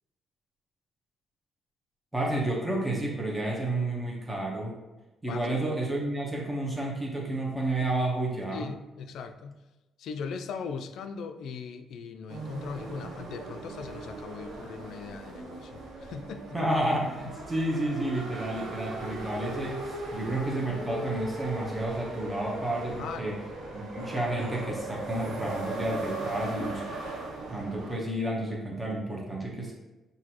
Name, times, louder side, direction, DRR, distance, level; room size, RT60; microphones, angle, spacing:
voice 1, 2.1-4.8 5.2-8.6 16.5-23.4 23.7-26.8 27.5-29.7, right 1 dB, 10° right, -2 dB, 1.0 m, -31 dB
voice 2, 8.5-9.6 10.0-16.6 23.0-23.4, left 5 dB, 75° left, 8 dB, 0.3 m, -39 dB
sound 1, 12.3-28.0, right 2 dB, 75° right, 0.8 m, -38 dB
5.9 x 2.7 x 2.9 m, 1.1 s
cardioid pair, 90°, 0 cm